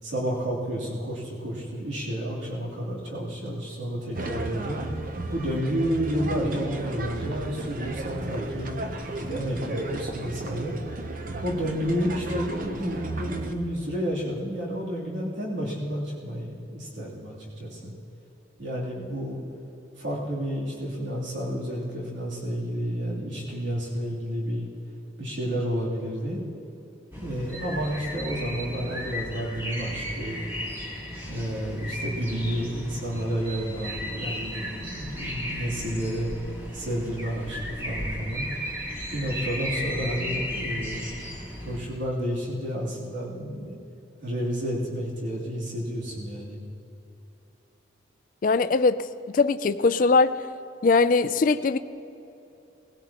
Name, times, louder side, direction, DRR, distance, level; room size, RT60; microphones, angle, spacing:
voice 1, 0.0-4.8 5.3-8.7 9.3-10.7 11.4-17.9 18.6-19.4 20.0-24.7 25.2-26.4 27.2-30.4 31.3-36.3 36.7-38.5 39.1-41.0 41.6-43.7 44.2-46.6, equal, 75° right, -6 dB, 3.2 m, -30 dB
sound 1, 4.1-13.5, right 2 dB, 45° right, 0.8 m, -34 dB
sound 2, 27.1-41.8, equal, 10° right, 1.9 m, -35 dB
voice 2, 48.4-49.0 49.3-50.4 50.8-51.8, left 4 dB, 45° left, 13 dB, 0.4 m, -21 dB
19.5 x 17.0 x 3.0 m, 2.8 s
head